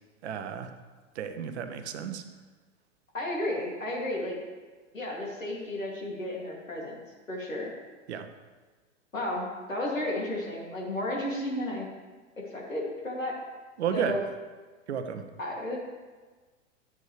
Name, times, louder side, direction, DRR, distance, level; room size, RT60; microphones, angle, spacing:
voice 1, 0.2-0.7 1.1-2.2 8.1-8.3 13.8-14.2 14.9-15.2, right 8 dB, 60° right, 9 dB, 1.0 m, -32 dB
voice 2, 3.1-4.4 4.9-7.0 7.3-7.7 9.1-11.9 12.5-13.3 13.9-14.2 15.4-15.9, left 1 dB, 85° left, -3 dB, 2.9 m, -33 dB
12.0 x 8.4 x 3.4 m, 1.3 s
figure-of-eight pair, 100°, 39 cm